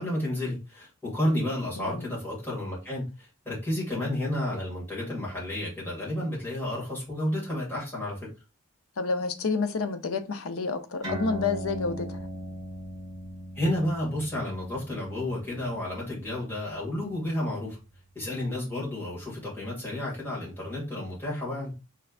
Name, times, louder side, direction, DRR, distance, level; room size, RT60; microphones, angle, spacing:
voice 1, 0.0-8.3 13.6-17.8 18.2-21.7, left 1 dB, 10° left, 2.1 m, -31 dB
voice 2, 1.8-2.1 9.0-12.2, left 4 dB, 70° left, 0.6 m, -29 dB
sound 1, 11.0-18.0, equal, 15° right, 1.5 m, -39 dB
4.4 x 3.3 x 2.4 m
head